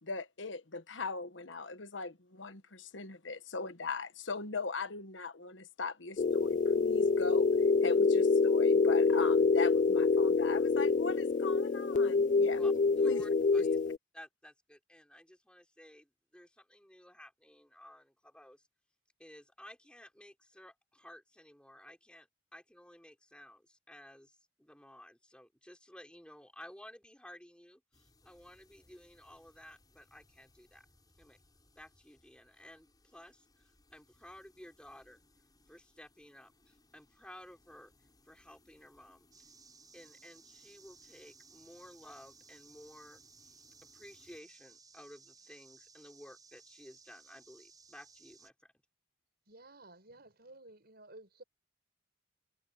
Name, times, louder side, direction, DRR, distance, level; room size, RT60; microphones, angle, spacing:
voice 1, 0.0-7.5 7.8-12.6 13.0-13.2 13.6-13.7, left 4 dB, 70° left, 1.3 m, -40 dB
sound 1, 6.2-14.0, left 4 dB, 40° left, 0.3 m, -26 dB
voice 2, 12.5-13.8 14.1-18.6 19.2-30.9 31.2-31.4 31.8-35.2 35.7-37.9 38.2-39.3 39.9-43.2 43.9-48.7, left 1 dB, 5° left, 5.9 m, -55 dB
sound 2, 27.9-44.4, left 2 dB, 20° left, 8.0 m, -69 dB
sound 3, 39.3-48.5, right 5 dB, 20° right, 4.5 m, -60 dB
voice 3, 49.5-51.4, right 2 dB, 55° right, 6.9 m, -54 dB
head